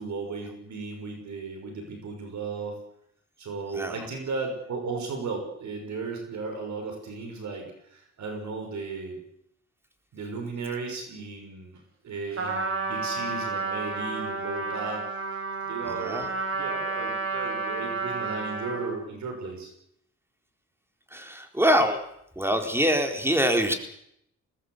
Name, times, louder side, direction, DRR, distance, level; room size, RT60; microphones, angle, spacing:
voice 1, 0.0-2.8 3.4-9.2 10.1-15.4 15.7-16.3 16.5-19.7, right 4 dB, 70° right, 4 dB, 6.3 m, -35 dB
Trumpet, 12.4-19.0, right 4 dB, 50° right, 5.9 m, -31 dB
voice 2, 15.8-16.3 21.1-22.0 22.4-23.7, equal, 10° right, 4 dB, 4.3 m, -24 dB
22.0 x 19.0 x 8.2 m, 0.75 s
cardioid pair, 95°, 29 cm